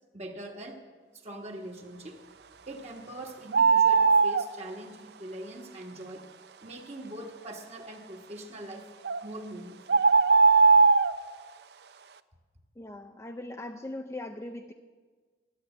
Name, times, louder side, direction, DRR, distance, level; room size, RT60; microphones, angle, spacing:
voice 1, 0.1-0.8 1.2-2.2 2.6-6.2 6.6-8.9 9.2-10.0, right 1 dB, 35° right, 1 dB, 1.3 m, -42 dB
sound 1, 3.5-4.5 9.0-9.2 9.9-11.2, right 4 dB, 70° right, 0.5 m, -19 dB
voice 2, 12.8-14.7, left 1 dB, 15° left, 3 dB, 0.5 m, -40 dB
13.0 x 9.8 x 8.9 m, 1.4 s
head